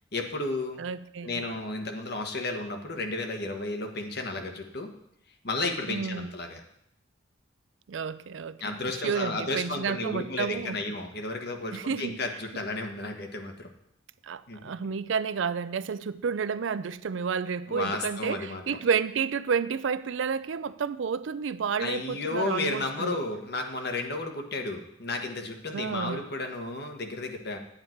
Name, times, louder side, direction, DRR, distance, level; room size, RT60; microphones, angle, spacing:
voice 1, 0.1-0.8 1.2-4.9 5.4-6.6 8.6-13.7 14.5-14.7 17.7-18.8 21.8-27.6, left 2 dB, 60° left, 1.3 m, -33 dB
voice 2, 0.8-1.4 5.9-6.3 7.9-8.6 9.0-10.8 11.7-12.1 12.5-12.6 14.2-23.2 25.7-26.2, right 6 dB, 85° right, 0.4 m, -30 dB
9.4 x 8.8 x 4.4 m
head